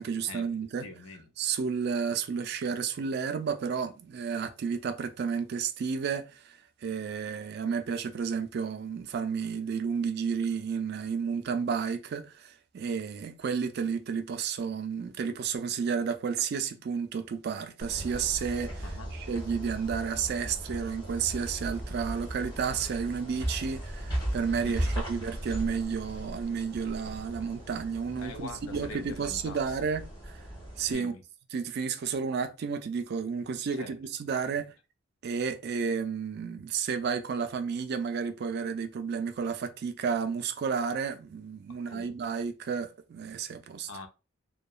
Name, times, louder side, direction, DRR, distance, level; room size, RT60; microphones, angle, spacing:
voice 1, 0.0-0.9 1.4-30.4 30.8-31.1 31.5-34.7 35.2-43.9, right 6 dB, 50° right, 0.3 m, -32 dB
voice 2, 0.8-1.3 18.8-19.1 24.6-24.9 28.2-29.6 30.9-31.2 33.7-33.9 41.7-42.3 43.9-44.1, left 3 dB, 70° left, 0.5 m, -44 dB
sound 1, 17.8-30.9, right 1 dB, 20° left, 1.2 m, -37 dB
2.8 x 2.2 x 2.3 m
head